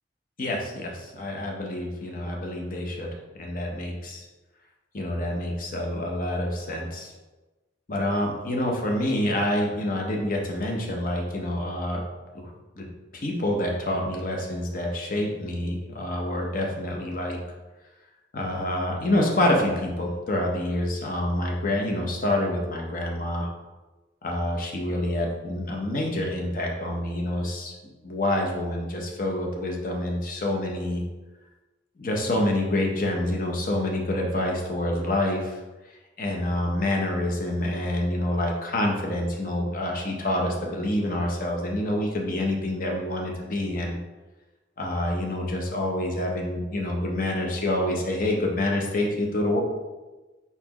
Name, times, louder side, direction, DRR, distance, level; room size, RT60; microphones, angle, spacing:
voice 1, 0.4-3.1 3.3-4.2 4.9-7.1 7.9-12.0 12.3-12.5 12.8-12.9 13.1-17.4 18.3-23.5 24.2-27.7 28.0-31.0 32.0-35.6 36.2-44.0 44.8-49.6, left 1 dB, 45° left, 1 dB, 0.7 m, -27 dB
4.2 x 4.0 x 2.9 m, 1.2 s
head